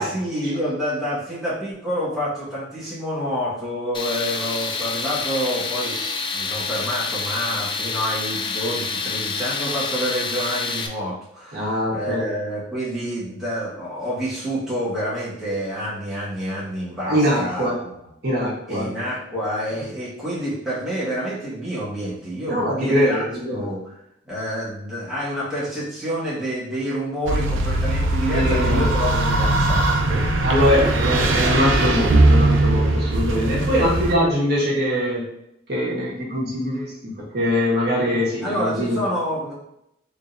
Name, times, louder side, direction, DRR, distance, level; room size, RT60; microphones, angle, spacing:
voice 1, 0.0-6.0 6.3-17.9 18.7-23.2 23.5-23.9 24.2-30.3 30.9-31.1 37.9-38.1 38.4-39.5, equal, ahead, -10 dB, 1.5 m, -28 dB
Tools, 3.9-10.9, left 4 dB, 25° left, 0.3 m, -27 dB
voice 2, 11.5-12.3 17.1-17.8 18.2-18.9 22.5-23.6 28.3-28.9 30.4-35.3 35.7-39.0, equal, 55° right, -6 dB, 1.3 m, -22 dB
sound 1, 27.3-34.2, right 2 dB, 85° right, 0.5 m, -20 dB
3.7 x 3.6 x 2.6 m, 0.80 s
head